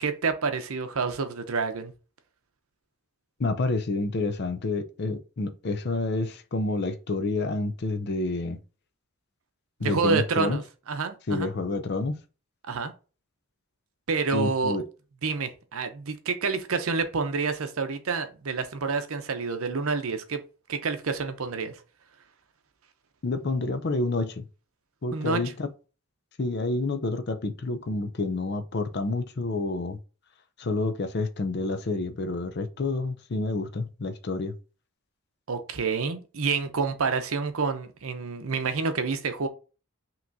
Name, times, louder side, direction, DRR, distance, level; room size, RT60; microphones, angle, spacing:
voice 1, 0.0-1.9 9.8-10.6 10.9-11.5 12.6-12.9 14.1-14.8 15.2-20.4 20.7-21.7 25.1-25.4 35.5-39.5, right 4 dB, 75° right, 0.7 m, -28 dB
voice 2, 3.4-8.6 9.8-10.6 11.3-12.2 14.3-14.9 23.2-24.5 25.0-25.7 26.4-30.0 30.6-34.5, left 2 dB, 50° left, 0.5 m, -29 dB
5.8 x 3.0 x 2.7 m
head